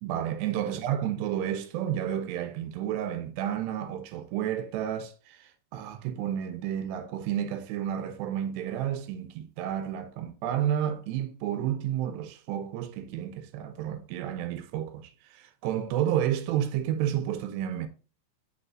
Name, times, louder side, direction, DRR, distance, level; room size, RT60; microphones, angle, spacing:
voice 1, 0.0-17.9, right 10 dB, 85° right, 2.9 m, -31 dB
6.8 x 6.2 x 2.4 m
omnidirectional pair, 4.9 m